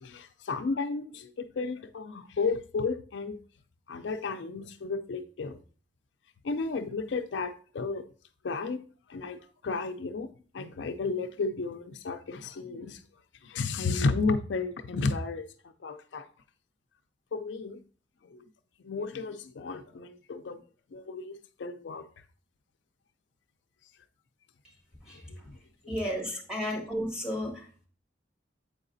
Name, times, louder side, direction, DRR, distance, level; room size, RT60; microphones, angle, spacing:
voice 1, 0.0-3.4 3.9-5.6 6.4-8.0 8.4-8.8 9.1-9.4 9.6-13.0 13.4-15.5 15.8-16.3 17.3-17.8 18.2-18.4 18.8-20.6 20.9-22.0 25.3-25.6 25.8-25.9 26.6-26.9, left 4 dB, 70° left, 8 dB, 0.4 m, -33 dB
voice 2, 25.9-27.9, equal, 5° right, -1 dB, 1.6 m, -33 dB
7.8 x 4.8 x 2.6 m, 0.42 s
head